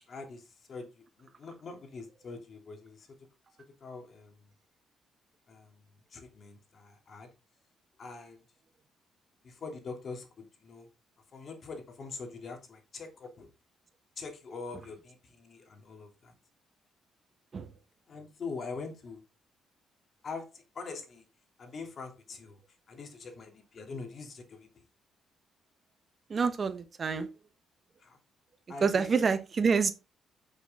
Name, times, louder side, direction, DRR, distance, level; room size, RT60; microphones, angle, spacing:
voice 1, 0.1-3.1 3.8-4.5 5.5-5.8 6.1-7.3 8.0-8.4 9.4-10.9 11.3-13.5 14.2-16.3 18.1-19.2 20.2-21.3 21.6-22.6 22.9-24.8 28.0-28.2 28.7-29.1, left 4 dB, 50° left, 2.9 m, -43 dB
voice 2, 26.3-27.3 28.8-29.9, right 5 dB, 40° right, 1.2 m, -27 dB
8.1 x 6.8 x 3.6 m
cardioid pair, 90°, 0 cm